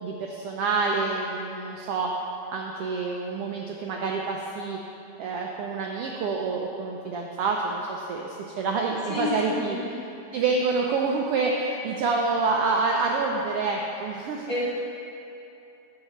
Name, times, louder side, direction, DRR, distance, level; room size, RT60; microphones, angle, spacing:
voice 1, 0.0-2.1 2.5-4.8 5.2-9.8 10.3-14.5, right 4 dB, 85° right, 0 dB, 1.3 m, -27 dB
voice 2, 9.1-9.8 14.5-14.6, left 3 dB, 40° left, -10 dB, 3.1 m, -29 dB
10.5 x 7.9 x 4.3 m, 2.8 s
omnidirectional pair, 3.3 m